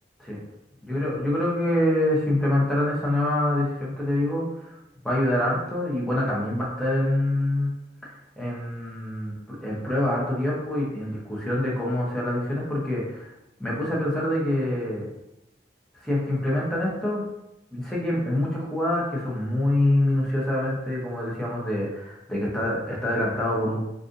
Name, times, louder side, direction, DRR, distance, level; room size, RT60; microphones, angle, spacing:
voice 1, 0.8-4.8 5.0-7.7 8.4-13.3 13.6-15.1 16.0-17.2 17.7-23.8, left 1 dB, 5° left, -5 dB, 0.7 m, -25 dB
2.5 x 2.4 x 3.7 m, 0.88 s
head